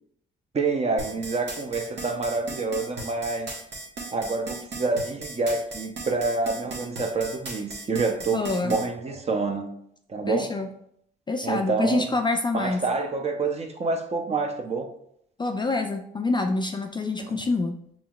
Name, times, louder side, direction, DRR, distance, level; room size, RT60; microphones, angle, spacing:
voice 1, 0.5-3.5 4.1-9.7 10.1-10.5 11.4-12.1 12.5-14.9 17.2-17.4, right 3 dB, 35° right, 4 dB, 0.6 m, -27 dB
sound 1, 1.0-8.9, right 3 dB, 60° right, 1.1 m, -36 dB
voice 2, 8.3-8.7 10.3-10.7 11.3-12.8 15.4-17.8, left 3 dB, 25° left, 5 dB, 0.3 m, -26 dB
5.4 x 3.0 x 2.3 m, 0.69 s
cardioid pair, 90°, 20 cm